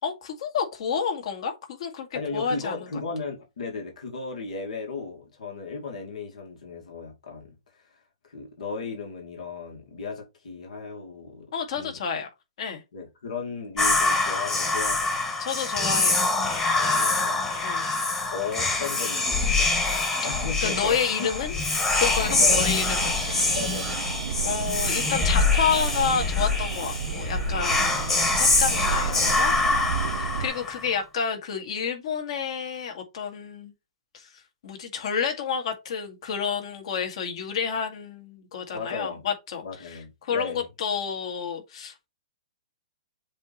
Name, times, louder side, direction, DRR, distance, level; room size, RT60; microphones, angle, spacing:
voice 1, 0.0-2.8 11.5-12.3 12.6-12.8 15.4-16.2 17.6-17.9 20.6-21.6 21.9-23.6 24.4-29.5 30.1-33.7 34.1-42.1, left 6 dB, 55° left, 1.9 m, -30 dB
voice 2, 2.1-7.9 8.2-12.0 12.9-15.2 16.7-17.5 18.3-19.7 20.2-21.3 22.4-22.7 23.5-24.0 27.5-27.8 30.1-30.4 38.7-39.3 39.6-40.7, left 4 dB, 80° left, 2.3 m, -35 dB
Whispering, 13.8-30.9, left 3 dB, 10° left, 1.2 m, -25 dB
sound 1, 22.2-30.5, right 7 dB, 70° right, 0.7 m, -32 dB
7.5 x 3.0 x 4.2 m
hypercardioid pair, 155°, 4 cm